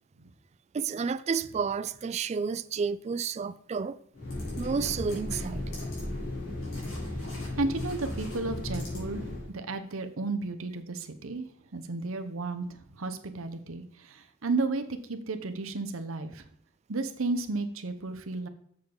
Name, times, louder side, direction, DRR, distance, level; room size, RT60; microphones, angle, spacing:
voice 1, 0.7-4.0 4.6-5.7, right 5 dB, 30° right, 0.3 m, -31 dB
sound 1, 4.1-9.5, left 1 dB, 80° left, 3.8 m, -35 dB
voice 2, 7.6-11.4 11.7-12.6 12.9-16.4 16.9-18.5, right 3 dB, 75° right, 0.9 m, -33 dB
7.1 x 6.9 x 3.8 m
head